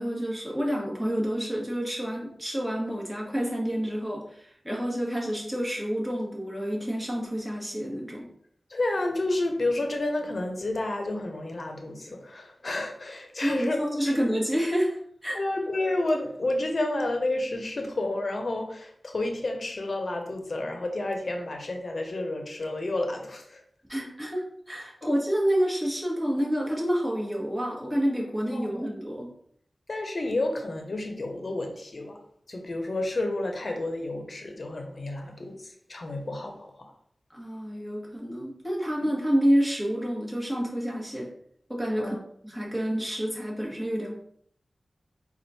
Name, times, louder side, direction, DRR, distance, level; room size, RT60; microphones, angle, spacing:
voice 1, 0.0-8.3 13.4-14.9 15.2-15.4 23.9-29.3 37.3-41.3 41.7-42.2 42.4-44.2, equal, 10° right, -3 dB, 1.6 m, -28 dB
voice 2, 8.7-14.2 15.3-23.6 28.5-28.9 29.9-32.2 32.5-36.9 42.0-42.2, left 2 dB, 60° left, 4 dB, 0.8 m, -30 dB
4.3 x 2.5 x 4.2 m, 0.66 s
cardioid pair, 45°, 0 cm